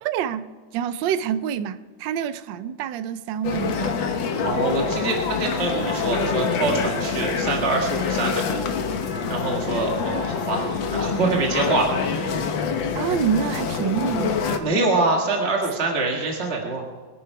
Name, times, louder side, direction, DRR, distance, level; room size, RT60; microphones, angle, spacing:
voice 1, 0.0-4.0 12.9-14.5, right 8 dB, 75° right, 1.4 m, -27 dB
sound 1, 3.4-14.6, left 5 dB, 80° left, 1.8 m, -26 dB
voice 2, 4.4-8.6 9.3-12.2 14.6-16.9, right 3 dB, 35° right, 1.9 m, -25 dB
22.5 x 10.5 x 4.7 m
omnidirectional pair, 2.1 m